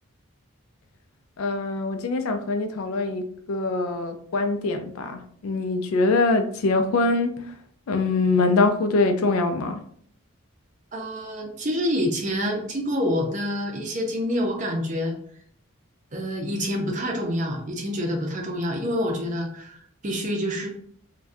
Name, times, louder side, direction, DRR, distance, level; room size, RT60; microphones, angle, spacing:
voice 1, 1.4-7.3 7.9-9.8, left 3 dB, 80° left, 7 dB, 0.4 m, -23 dB
voice 2, 10.9-15.2 16.1-20.7, equal, 35° right, 2 dB, 0.5 m, -27 dB
2.6 x 2.2 x 3.4 m, 0.62 s
head